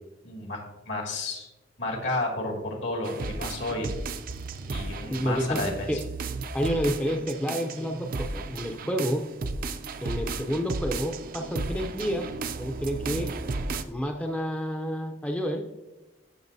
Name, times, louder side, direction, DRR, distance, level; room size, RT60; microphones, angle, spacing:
voice 1, 0.2-1.5 1.8-3.9 4.7-6.0, left 2 dB, 70° left, 1 dB, 2.2 m, -32 dB
sound 1, 3.0-13.8, right 3 dB, 50° right, 0.5 m, -34 dB
voice 2, 5.1-5.6 5.9-6.0 6.5-9.2 10.0-12.3 12.6-13.3 13.9-15.6, equal, 5° left, 2 dB, 0.5 m, -29 dB
14.5 x 5.9 x 2.7 m, 1.0 s
head